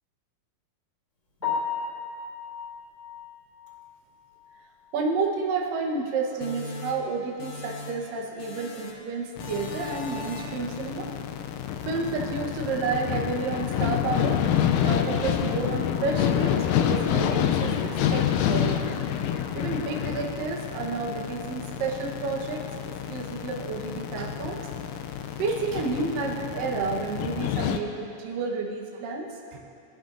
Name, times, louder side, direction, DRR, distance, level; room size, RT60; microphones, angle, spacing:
Piano, 1.4-5.4 5.7-5.9 6.3-6.4 6.8-6.9 10.0-10.1 18.6-18.8, left 6 dB, 30° left, 4.0 m, -36 dB
voice 1, 4.9-11.1 11.8-14.4 14.8-19.0 19.5-24.6 25.4-29.6, right 4 dB, 65° right, -1 dB, 2.7 m, -30 dB
sound 1, 6.4-8.1 8.4-9.1 9.4-10.7, left 3 dB, 65° left, 1.9 m, -40 dB
sound 2, 9.4-27.8, left 9 dB, 85° left, 1.9 m, -28 dB
21.5 x 12.0 x 2.7 m, 2.8 s
omnidirectional pair, 4.5 m